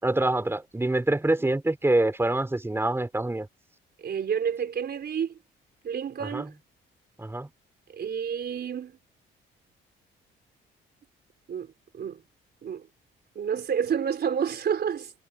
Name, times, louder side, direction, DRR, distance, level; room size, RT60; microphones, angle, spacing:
voice 1, 0.0-3.5 6.3-6.5 7.2-7.5, right 2 dB, 10° right, 4.8 m, -25 dB
voice 2, 4.0-5.3 5.8-6.5 7.9-8.9 11.5-12.2 12.6-12.9 13.4-15.1, right 7 dB, 55° right, 4.0 m, -29 dB
cardioid pair, 90°, 20 cm